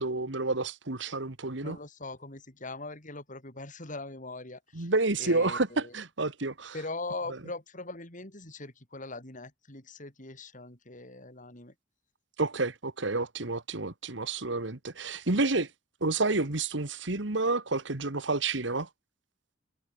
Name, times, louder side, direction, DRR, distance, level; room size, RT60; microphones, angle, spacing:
voice 1, 0.0-1.8 4.8-6.7 12.4-15.7 16.0-18.9, right 3 dB, 75° right, 1.8 m, -29 dB
voice 2, 1.6-5.9 6.7-11.7, left 2 dB, 45° left, 7.4 m, -41 dB
head